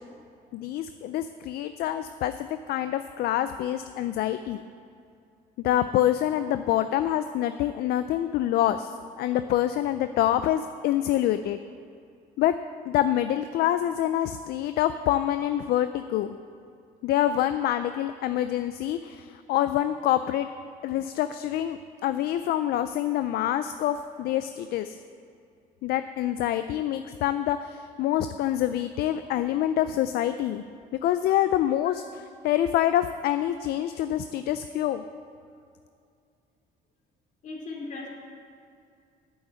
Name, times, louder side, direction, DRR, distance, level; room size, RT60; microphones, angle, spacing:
voice 1, 0.5-4.6 5.6-8.9 9.2-11.6 12.4-12.5 12.8-16.3 17.0-20.5 20.8-25.0 25.8-30.6 31.0-32.0 32.4-35.0, left 12 dB, 70° left, 11 dB, 0.4 m, -26 dB
voice 2, 37.4-38.1, left 3 dB, 50° left, -1 dB, 2.7 m, -37 dB
8.7 x 7.0 x 8.1 m, 2.4 s
cardioid pair, 110°, 17 cm